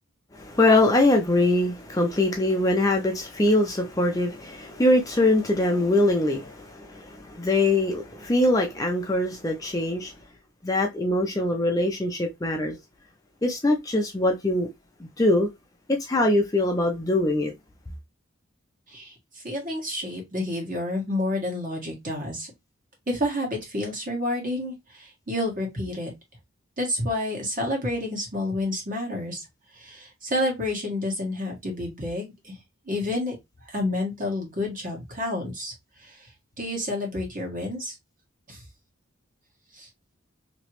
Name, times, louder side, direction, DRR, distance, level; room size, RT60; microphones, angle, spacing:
voice 1, 0.3-10.1 10.6-12.8 13.4-14.7 15.0-15.5 15.9-17.5, left 2 dB, 15° left, 0.5 m, -23 dB
voice 2, 18.9-22.5 23.1-26.1 26.8-29.4 29.7-32.6 32.8-35.7 36.0-36.3 36.6-37.9 38.5-38.6 39.7-39.9, left 1 dB, 40° right, 1.5 m, -29 dB
3.1 x 2.9 x 2.9 m
head